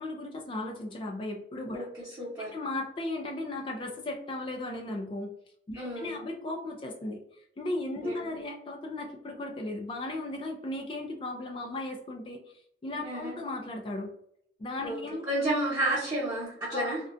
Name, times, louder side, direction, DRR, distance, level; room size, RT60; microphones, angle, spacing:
voice 1, 0.0-1.9 2.5-5.3 5.7-7.2 7.6-12.4 12.8-14.1 14.6-15.2 16.7-16.9, left 2 dB, 30° left, 2 dB, 0.3 m, -36 dB
voice 2, 1.7-2.5 5.7-6.2 8.0-8.3 13.0-13.4 14.8-15.0 15.2-17.0, right 1 dB, 20° right, -12 dB, 0.9 m, -31 dB
2.4 x 2.1 x 2.4 m, 0.69 s
head